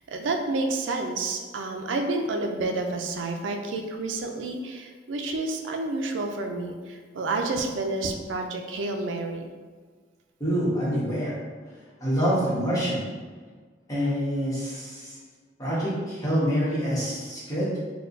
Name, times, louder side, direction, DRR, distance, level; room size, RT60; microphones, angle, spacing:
voice 1, 0.1-9.4, right 2 dB, 90° right, 4 dB, 0.4 m, -29 dB
voice 2, 10.4-11.4 12.0-13.0 13.9-15.2 15.6-17.7, equal, 20° left, -8 dB, 1.1 m, -26 dB
4.3 x 2.3 x 2.5 m, 1.5 s
head